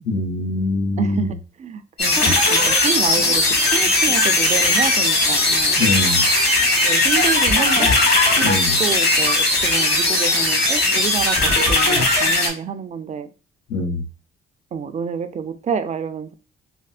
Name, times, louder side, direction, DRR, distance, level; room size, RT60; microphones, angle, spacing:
voice 1, 0.0-1.3 5.8-6.2 8.4-8.8 13.7-14.0, left 2 dB, 90° left, 1 dB, 1.0 m, -23 dB
voice 2, 1.0-5.7 6.8-7.9 8.8-13.3 14.7-16.3, right 6 dB, 35° right, 9 dB, 0.4 m, -28 dB
sound 1, 2.0-12.5, left 2 dB, 55° left, 1.4 m, -18 dB
4.3 x 2.1 x 2.3 m, 0.34 s
cardioid pair, 90°, 20 cm